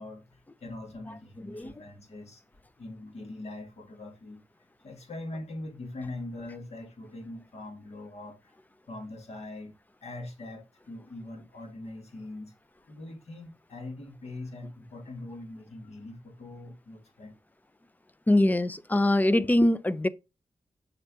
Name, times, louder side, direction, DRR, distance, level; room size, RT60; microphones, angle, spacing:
voice 1, 0.0-2.4 2.8-4.4 4.8-8.5 8.9-9.7 10.0-12.5 12.9-17.3, left 2 dB, 65° left, 1.9 m, -42 dB
voice 2, 18.3-20.1, left 1 dB, 15° left, 0.4 m, -23 dB
6.4 x 4.5 x 3.6 m
wide cardioid pair, 105°, 12 cm